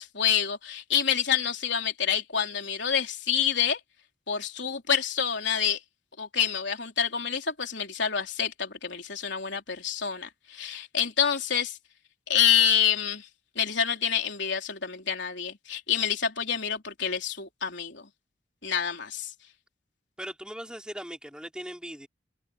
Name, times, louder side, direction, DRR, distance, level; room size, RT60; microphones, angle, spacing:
voice 1, 0.0-3.8 4.3-5.8 6.2-11.8 12.3-13.3 13.6-18.0 18.6-19.3, left 8 dB, 60° left, 3.8 m, -27 dB
voice 2, 20.2-22.1, equal, 5° right, 4.1 m, -39 dB
open air
head